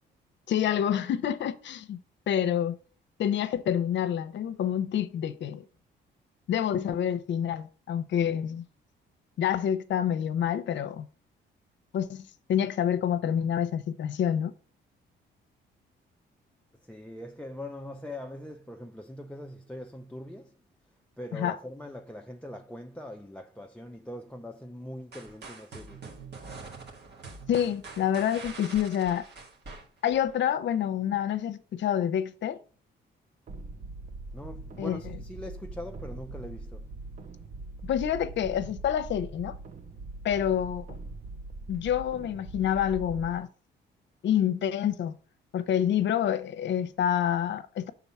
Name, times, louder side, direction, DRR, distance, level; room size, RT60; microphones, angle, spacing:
voice 1, 0.5-2.0 2.3-2.7 3.2-5.6 6.5-8.6 9.4-11.1 11.9-14.5 21.3-21.6 27.5-29.3 30.0-32.6 34.8-35.1 37.8-39.6 40.2-40.8 41.7-43.5 44.2-45.1 45.5-47.9, left 9 dB, 65° left, 0.7 m, -27 dB
voice 2, 16.9-20.5 21.2-26.0 34.3-36.9, left 1 dB, 5° left, 0.5 m, -42 dB
sound 1, 25.1-30.4, right 3 dB, 60° right, 1.9 m, -45 dB
sound 2, 33.5-43.4, right 3 dB, 40° right, 0.7 m, -42 dB
6.0 x 3.8 x 5.5 m
cardioid pair, 90°, 20 cm